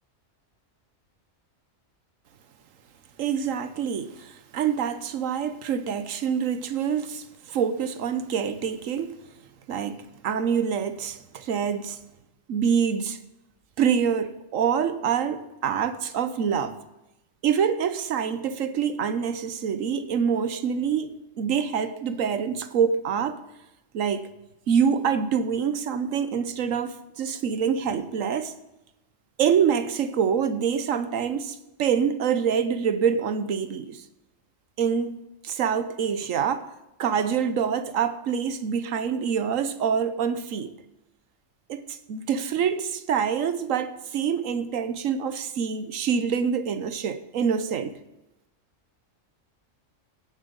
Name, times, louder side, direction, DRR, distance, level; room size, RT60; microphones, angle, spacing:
voice 1, 3.2-9.1 9.7-12.0 12.5-13.2 13.8-16.8 17.4-23.4 23.9-24.2 24.7-28.5 29.4-34.0 34.8-35.1 35.4-36.6 37.0-40.7 41.7-47.9, right 7 dB, 85° right, 1.2 m, -26 dB
16.5 x 7.6 x 5.3 m
omnidirectional pair, 1.3 m